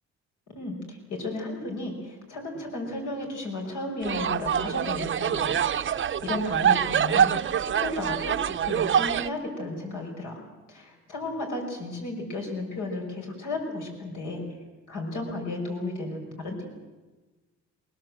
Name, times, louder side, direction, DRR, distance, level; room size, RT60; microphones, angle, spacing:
voice 1, 0.5-7.3 7.7-10.4 10.7-14.4 14.9-16.6, left 2 dB, 80° left, 1 dB, 5.9 m, -34 dB
sound 1, 4.0-9.3, right 8 dB, 40° right, 0.6 m, -25 dB
22.5 x 20.5 x 7.7 m, 1.2 s
cardioid pair, 90°, 30 cm